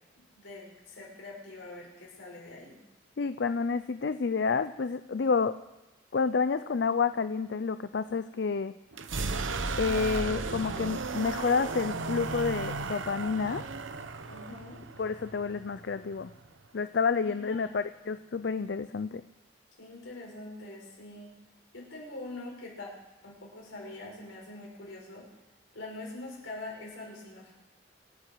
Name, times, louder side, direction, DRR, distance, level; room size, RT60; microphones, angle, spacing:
voice 1, 0.4-2.8 14.3-14.8 17.2-17.8 19.8-21.3 21.7-22.9 23.2-25.3 25.7-27.5, left 2 dB, 85° left, -2 dB, 5.8 m, -44 dB
voice 2, 3.2-5.6 6.1-8.7 9.8-13.6 15.0-16.3 16.7-19.2, left 5 dB, 60° left, 12 dB, 0.4 m, -29 dB
sound 1, 8.9-16.7, right 3 dB, 85° right, 0.9 m, -35 dB
26.5 x 9.7 x 4.7 m, 1.0 s
head